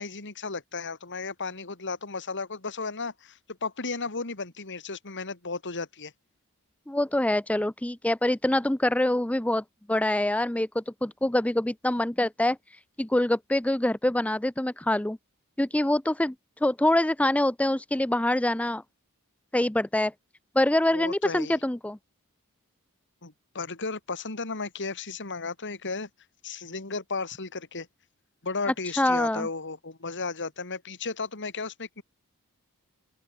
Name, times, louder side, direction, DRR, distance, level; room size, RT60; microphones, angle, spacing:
voice 1, 0.0-6.1 20.9-21.6 23.2-26.1 26.4-27.9 28.4-32.0, left 4 dB, 55° left, 2.9 m, -34 dB
voice 2, 6.9-12.6 13.0-15.2 15.6-16.3 16.6-18.8 19.5-20.1 20.6-22.0 29.0-29.5, left 1 dB, 5° left, 0.5 m, -25 dB
open air
head